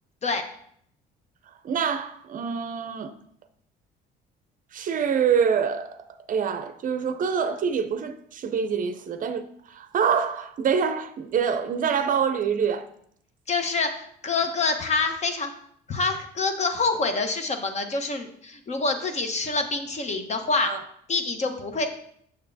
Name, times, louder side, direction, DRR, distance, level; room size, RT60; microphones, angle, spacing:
voice 1, 1.6-3.1 4.7-6.0 6.3-12.9 20.6-20.8, right 7 dB, 45° right, 0.5 m, -25 dB
voice 2, 13.5-15.5 15.9-20.7 21.1-21.9, left 3 dB, 35° left, 1.0 m, -26 dB
6.7 x 6.6 x 2.7 m
supercardioid pair, 90°, 19 cm